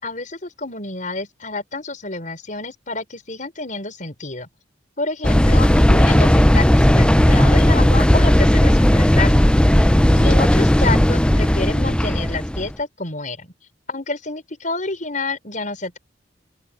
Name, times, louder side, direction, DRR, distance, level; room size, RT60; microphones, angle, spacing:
voice 1, 0.0-4.5 5.0-9.5 10.1-13.5 13.9-16.0, left 3 dB, 45° left, 5.9 m, -28 dB
sound 1, 5.2-12.7, equal, 5° left, 0.5 m, -15 dB
open air
head